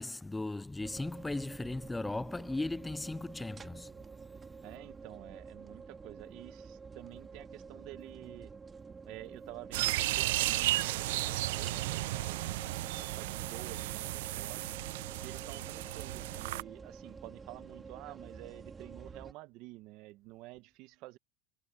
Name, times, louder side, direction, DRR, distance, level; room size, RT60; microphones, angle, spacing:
voice 1, 0.0-3.9, left 2 dB, 5° left, 0.3 m, -37 dB
sound 1, 0.8-19.3, right 5 dB, 15° right, 1.9 m, -49 dB
voice 2, 4.6-8.5 9.0-12.6 13.0-14.8 15.2-21.2, right 19 dB, 55° right, 0.9 m, -50 dB
sound 2, 9.7-16.6, right 17 dB, 80° right, 0.5 m, -34 dB
supercardioid pair, 140°, 0 cm